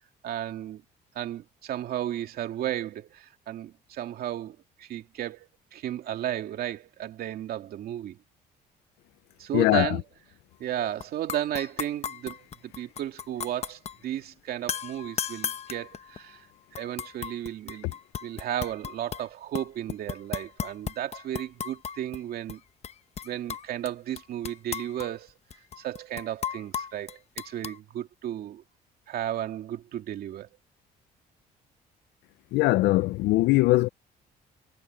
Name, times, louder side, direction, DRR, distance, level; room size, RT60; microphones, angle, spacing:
voice 1, 0.2-0.8 1.1-8.2 9.4-10.0 10.6-16.5 16.7-22.6 23.2-25.3 25.8-28.6 29.1-30.5, right 11 dB, 65° right, 2.6 m, -34 dB
voice 2, 9.5-10.0 32.5-33.9, left 19 dB, 85° left, 0.5 m, -21 dB
sound 1, 11.0-11.1 11.3-14.0 14.7-16.3 16.7-19.3 19.5-22.2 22.5-22.6 22.8-23.9 24.2-27.8, left 7 dB, 40° left, 1.0 m, -35 dB
cardioid pair, 110°, 17 cm